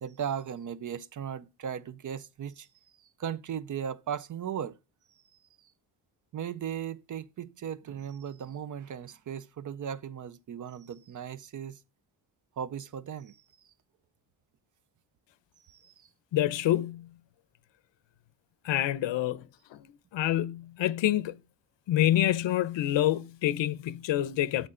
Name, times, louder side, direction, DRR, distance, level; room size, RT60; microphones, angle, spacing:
voice 1, 0.0-2.7 3.0-4.7 6.3-11.8 12.6-13.4 15.7-16.1, right 8 dB, 45° right, 0.5 m, -37 dB
voice 2, 16.3-17.1 18.6-19.4 19.7-19.8 20.1-21.4 21.9-24.7, left 13 dB, 70° left, 0.8 m, -27 dB
12.5 x 7.7 x 3.8 m
cardioid pair, 140°, 46 cm